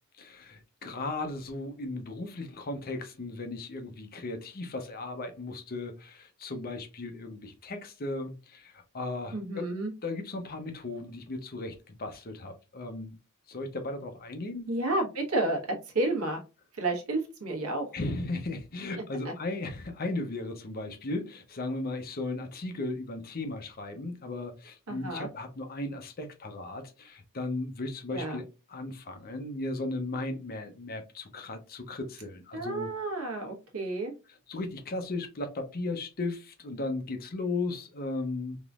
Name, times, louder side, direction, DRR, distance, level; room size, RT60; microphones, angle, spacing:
voice 1, 0.2-9.7 10.0-13.2 13.5-14.7 17.9-32.9 34.5-38.6, left 2 dB, 45° left, 0.7 m, -36 dB
voice 2, 9.3-9.9 14.7-16.4 16.7-17.9 19.2-19.3 24.9-25.3 28.1-28.4 32.5-34.1, right 2 dB, 90° right, 1.2 m, -31 dB
3.6 x 3.0 x 2.4 m
head